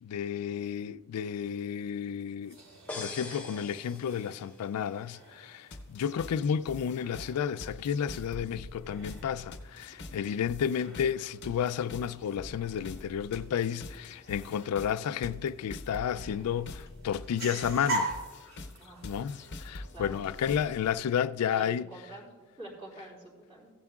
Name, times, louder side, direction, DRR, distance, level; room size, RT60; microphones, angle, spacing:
voice 1, 0.0-2.6 2.9-18.1 19.0-21.9, left 8 dB, 85° left, 0.3 m, -32 dB
sound 1, 2.4-20.5, right 2 dB, 65° right, 3.2 m, -44 dB
sound 2, 2.9-4.7, left 3 dB, 5° left, 0.8 m, -42 dB
sound 3, 5.7-20.9, left 2 dB, 50° left, 0.7 m, -46 dB
voice 2, 18.8-19.2 19.9-20.2 21.5-22.3 22.6-23.7, right 1 dB, 30° right, 3.3 m, -47 dB
16.0 x 11.0 x 2.4 m
head